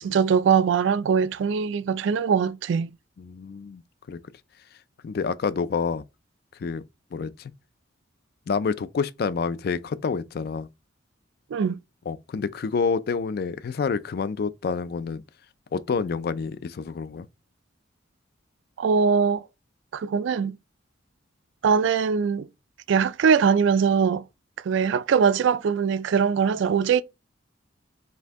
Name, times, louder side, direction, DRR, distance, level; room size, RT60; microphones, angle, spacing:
voice 1, 0.0-2.9 11.5-11.8 18.8-19.4 19.9-20.6 21.6-22.5 22.9-24.2 24.6-27.0, right 6 dB, 65° right, 0.3 m, -22 dB
voice 2, 3.2-3.8 4.1-4.2 5.0-6.0 6.6-6.8 7.1-7.5 8.5-10.7 12.1-15.2 15.7-17.3, left 5 dB, 50° left, 0.3 m, -28 dB
4.4 x 2.6 x 3.4 m
head